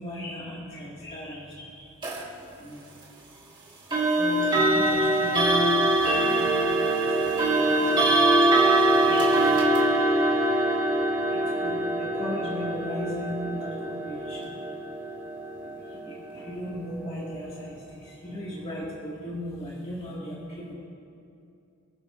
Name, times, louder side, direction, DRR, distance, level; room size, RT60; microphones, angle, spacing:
voice 1, 0.0-2.0 2.6-2.8 4.1-14.6 15.6-20.7, equal, 30° left, -8 dB, 2.5 m, -37 dB
sound 1, 2.0-2.2 3.9-16.7, right 2 dB, 20° right, 2.1 m, -23 dB
28.0 x 10.5 x 2.8 m, 2.6 s
head